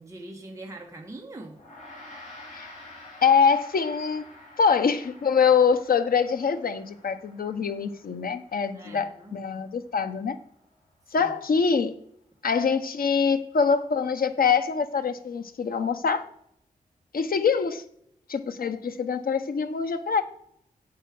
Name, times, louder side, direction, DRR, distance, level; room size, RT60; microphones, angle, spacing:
voice 1, 0.0-1.6 8.7-9.3 11.2-11.3, right 2 dB, 20° right, 0 dB, 1.6 m, -42 dB
Gong, 1.5-11.2, left 2 dB, 60° left, 5.3 m, -49 dB
voice 2, 3.2-4.2 4.6-10.4 11.1-11.9 12.4-16.2 17.1-17.8 18.3-20.2, left 6 dB, 80° left, 9 dB, 1.0 m, -24 dB
9.9 x 8.3 x 6.1 m, 0.70 s
wide cardioid pair, 135°, 15 cm